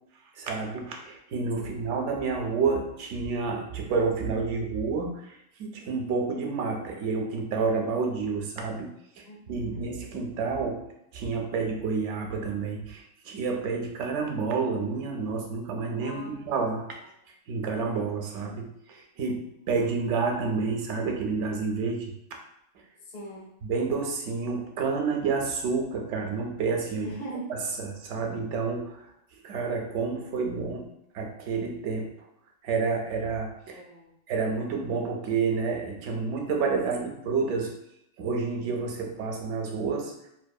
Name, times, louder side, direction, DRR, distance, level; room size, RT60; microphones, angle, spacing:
voice 1, 0.4-8.9 9.2-10.9 11.1-16.9 17.5-22.1 23.6-27.1 27.5-29.1 29.4-30.9 31.1-32.1 32.6-33.8 34.3-37.7 38.2-40.3, right 4 dB, 70° right, 2 dB, 0.8 m, -29 dB
voice 2, 1.6-1.9 9.2-9.9 16.0-16.4 23.1-23.6 27.0-27.5 33.7-34.1, right 1 dB, 80° left, -2 dB, 1.1 m, -41 dB
2.6 x 2.6 x 2.2 m, 0.80 s
omnidirectional pair, 1.3 m